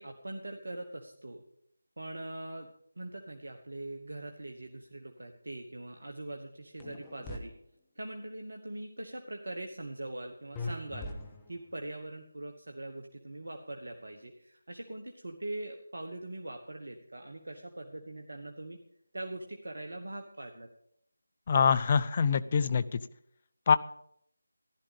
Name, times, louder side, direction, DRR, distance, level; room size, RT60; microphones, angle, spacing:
voice 1, 0.0-1.4 2.0-7.5 7.9-11.1 11.5-18.8 19.1-20.7, right 1 dB, 60° right, 3 dB, 1.4 m, -42 dB
sound 1, 6.8-7.4 10.6-11.7, left 2 dB, 10° left, 1.2 m, -40 dB
voice 2, 21.5-23.0 23.7-23.8, left 6 dB, 30° left, 15 dB, 0.5 m, -24 dB
14.5 x 11.5 x 5.2 m, 0.73 s
figure-of-eight pair, 160°, 0 cm